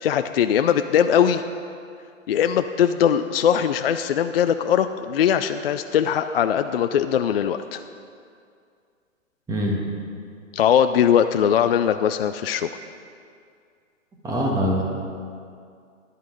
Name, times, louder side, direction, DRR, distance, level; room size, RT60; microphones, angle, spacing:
voice 1, 0.0-1.4 2.3-7.8 10.5-12.7, left 9 dB, 50° left, 9 dB, 0.4 m, -20 dB
voice 2, 14.2-14.8, equal, 10° right, -2 dB, 1.5 m, -23 dB
12.5 x 11.0 x 3.8 m, 2.3 s
hypercardioid pair, 130°, 39 cm